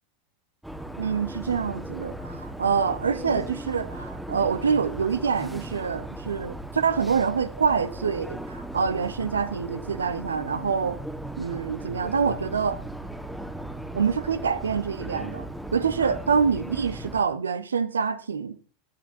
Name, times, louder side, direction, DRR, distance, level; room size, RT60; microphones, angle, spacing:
sound 1, 0.6-17.2, right 1 dB, 5° right, 1.5 m, -37 dB
voice 1, 1.0-11.0 11.4-12.8 13.9-15.5 15.7-18.6, right 6 dB, 75° right, 1.0 m, -26 dB
18.0 x 12.0 x 2.7 m
figure-of-eight pair, 85°, 0 cm